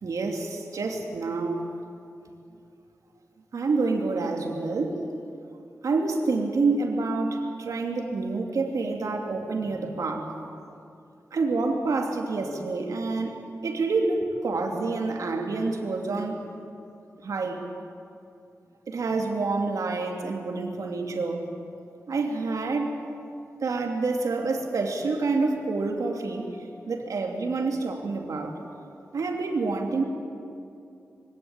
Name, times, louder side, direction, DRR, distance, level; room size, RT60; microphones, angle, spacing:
voice 1, 0.0-1.7 3.5-5.0 5.8-10.3 11.3-13.4 13.6-16.4 17.2-17.6 18.9-21.5 22.1-23.0 23.6-26.4 26.9-28.5 29.1-30.0, right 3 dB, 80° right, 2 dB, 2.7 m, -27 dB
23.5 x 17.0 x 8.9 m, 2.6 s
wide cardioid pair, 130°, 6 cm